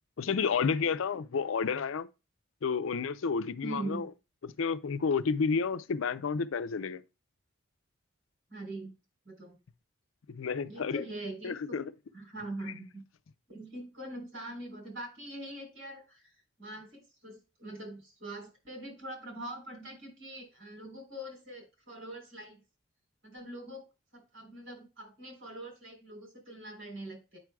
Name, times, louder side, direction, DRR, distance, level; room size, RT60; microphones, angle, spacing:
voice 1, 0.2-2.1 2.6-4.1 4.6-7.0 10.3-11.0 11.4-11.9, left 5 dB, 75° left, 0.5 m, -30 dB
voice 2, 3.6-4.0 8.5-8.9 9.2-9.6 10.7-11.8 12.1-13.0 13.5-22.6 23.2-23.8 24.1-27.4, right 1 dB, 70° right, 3.8 m, -43 dB
9.0 x 6.0 x 2.3 m
head